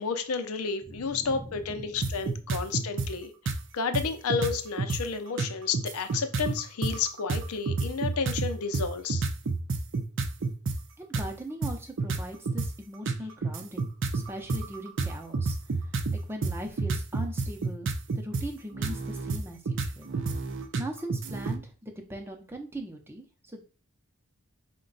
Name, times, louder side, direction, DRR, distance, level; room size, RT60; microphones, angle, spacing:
voice 1, 0.0-3.3 3.7-9.2, left 5 dB, 85° left, 8 dB, 0.6 m, -31 dB
voice 2, 0.9-2.8 11.0-17.9 18.1-20.1 20.8-23.6, right 1 dB, 10° right, 2 dB, 0.6 m, -40 dB
sound 1, 2.0-3.1 3.5-3.6 3.9-4.0 4.3-5.0 5.4-10.8 11.1-11.3 11.6-12.7 13.1-18.4 18.7-21.6, right 3 dB, 55° right, 0.5 m, -29 dB
5.0 x 2.2 x 3.9 m, 0.36 s
head